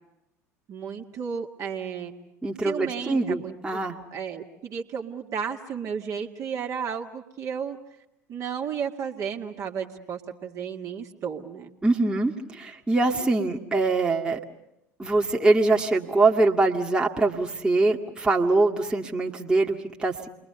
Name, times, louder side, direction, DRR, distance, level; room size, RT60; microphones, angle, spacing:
voice 1, 0.7-2.1 2.6-3.8 4.1-7.8 8.3-11.7, right 7 dB, 35° right, 2 dB, 2.1 m, -33 dB
voice 2, 2.4-4.0 11.8-14.4 15.0-20.3, right 3 dB, 10° right, -1 dB, 2.0 m, -23 dB
30.0 x 22.5 x 6.8 m, 0.88 s
figure-of-eight pair, 70°, 9 cm